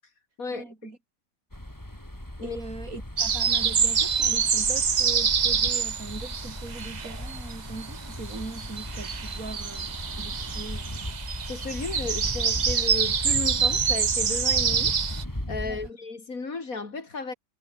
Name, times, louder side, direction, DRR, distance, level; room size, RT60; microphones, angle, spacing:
voice 1, 0.5-1.0 2.4-11.0 15.6-15.9, right 3 dB, 80° right, 4.5 m, -40 dB
sound 1, 1.5-15.9, left 1 dB, 15° left, 4.2 m, -37 dB
sound 2, 3.2-7.5 7.8-15.2, right 6 dB, 40° right, 0.7 m, -26 dB
voice 2, 11.5-14.9 15.5-17.3, left 4 dB, 80° left, 3.5 m, -34 dB
omnidirectional pair, 1.4 m